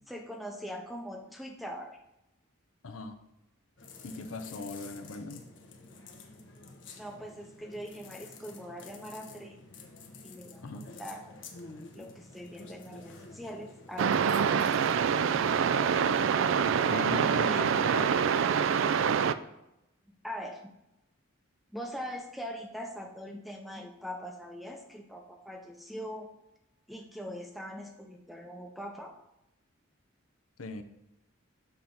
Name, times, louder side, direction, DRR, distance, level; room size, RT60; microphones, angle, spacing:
voice 1, 0.1-2.0 7.0-9.6 10.2-11.2 11.9-14.8 17.0-17.1 17.5-17.7 20.2-20.7 21.7-26.3 26.9-29.2, equal, ahead, 3 dB, 0.6 m, -42 dB
voice 2, 2.8-3.2 4.0-5.5 10.6-10.9 16.9-18.3 30.6-30.8, left 3 dB, 80° left, 8 dB, 0.7 m, -38 dB
sound 1, 3.8-16.3, left 3 dB, 60° left, 1.0 m, -50 dB
sound 2, 14.0-19.3, right 7 dB, 65° right, 0.3 m, -26 dB
6.9 x 4.0 x 5.8 m, 0.89 s
head